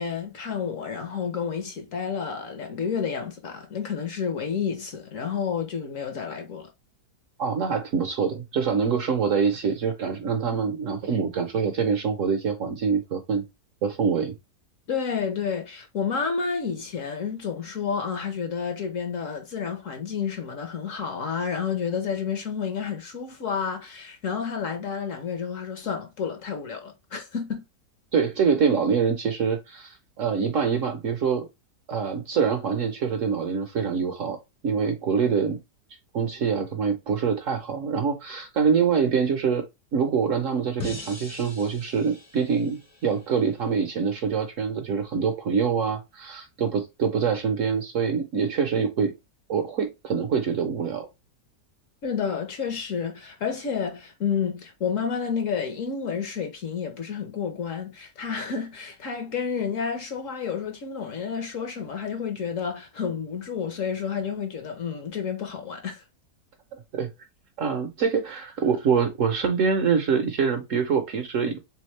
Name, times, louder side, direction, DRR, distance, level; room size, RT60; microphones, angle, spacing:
voice 1, 0.0-6.7 14.9-27.6 52.0-66.0, left 6 dB, 60° left, 1.0 m, -30 dB
voice 2, 7.4-13.4 13.8-14.4 28.1-31.5 31.9-34.4 34.6-35.6 36.1-39.6 39.9-49.1 49.5-51.1 66.7-67.1 67.6-71.6, right 6 dB, 60° right, 0.9 m, -25 dB
sound 1, 40.8-43.9, left 3 dB, 20° left, 0.4 m, -42 dB
3.5 x 3.5 x 3.1 m
omnidirectional pair, 1.8 m